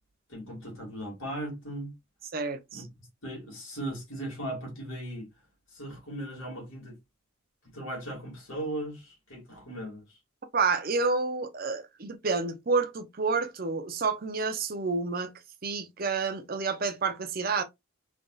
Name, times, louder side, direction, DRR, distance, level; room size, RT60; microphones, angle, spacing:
voice 1, 0.3-1.9 2.7-5.3 5.7-7.0 7.7-10.0, right 1 dB, 65° left, 2.1 m, -38 dB
voice 2, 2.3-2.8 10.5-15.3 15.6-17.6, right 4 dB, 45° right, 0.6 m, -29 dB
3.9 x 3.4 x 2.3 m
head